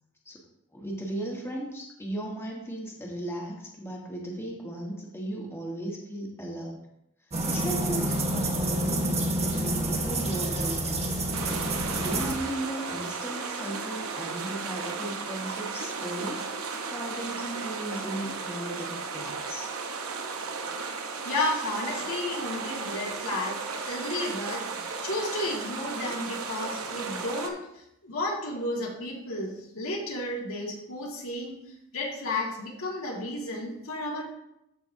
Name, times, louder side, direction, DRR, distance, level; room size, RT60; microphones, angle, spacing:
voice 1, 0.7-6.8 7.5-11.2 11.8-16.5 16.9-19.7, right 1 dB, 10° left, -2 dB, 1.3 m, -36 dB
sound 1, 7.3-12.3, right 1 dB, 30° right, 1.2 m, -28 dB
sound 2, 11.3-27.5, right 4 dB, 85° right, 0.9 m, -35 dB
voice 2, 21.2-23.6 23.9-24.6 25.0-27.6 28.0-31.6 31.9-34.2, left 2 dB, 75° left, -2 dB, 1.9 m, -32 dB
13.5 x 5.1 x 2.7 m, 0.82 s
head